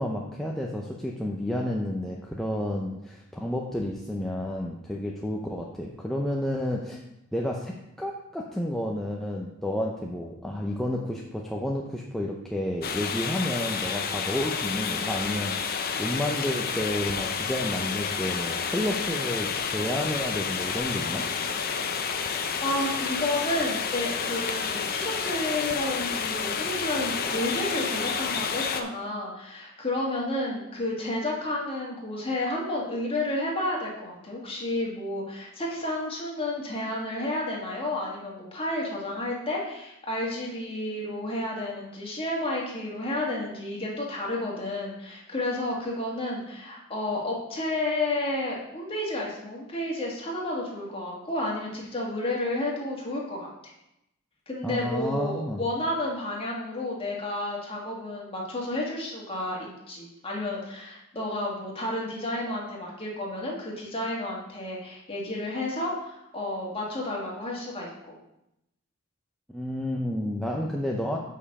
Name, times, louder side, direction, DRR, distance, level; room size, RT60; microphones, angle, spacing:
voice 1, 0.0-7.0 7.3-21.2 54.6-55.6 69.5-71.2, left 1 dB, ahead, -2 dB, 0.6 m, -31 dB
sound 1, 12.8-28.8, left 6 dB, 45° left, 0.6 m, -30 dB
voice 2, 22.6-53.5 54.5-68.2, left 1 dB, 25° left, -3 dB, 1.7 m, -31 dB
6.6 x 5.6 x 4.8 m, 0.85 s
head